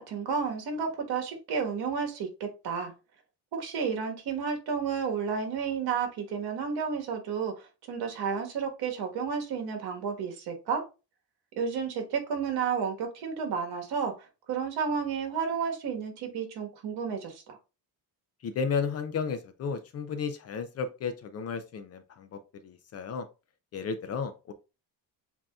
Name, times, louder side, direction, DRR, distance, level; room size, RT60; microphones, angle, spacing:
voice 1, 0.0-2.9 3.5-10.8 11.6-17.6, right 6 dB, 65° right, 4 dB, 1.4 m, -32 dB
voice 2, 18.4-23.2 23.7-24.5, left 5 dB, 40° left, 9 dB, 0.5 m, -33 dB
7.6 x 2.8 x 2.3 m, 0.29 s
cardioid pair, 170°, 41 cm